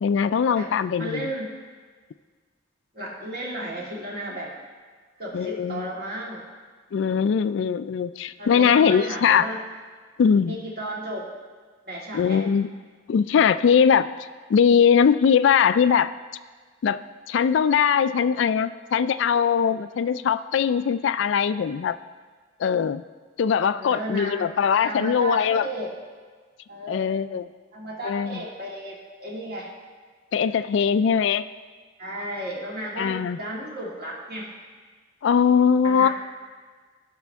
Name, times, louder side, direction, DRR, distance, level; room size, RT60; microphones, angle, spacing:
voice 1, 0.0-1.3 5.3-5.9 6.9-9.5 10.2-10.6 12.1-12.7 13.1-14.1 14.5-16.1 16.8-17.0 17.3-22.0 22.6-23.0 23.4-25.7 26.9-27.5 28.0-28.4 30.3-31.4 33.0-33.4 35.2-36.1, left 7 dB, 70° left, 14 dB, 0.3 m, -21 dB
voice 2, 1.0-1.6 2.9-4.5 5.2-6.4 8.4-9.6 10.5-11.3 11.9-12.4 23.7-24.5 24.8-25.9 26.7-27.1 27.7-29.7 32.0-34.5 35.8-36.1, right 1 dB, 50° right, -4 dB, 2.2 m, -33 dB
16.0 x 6.0 x 3.5 m, 1.5 s
head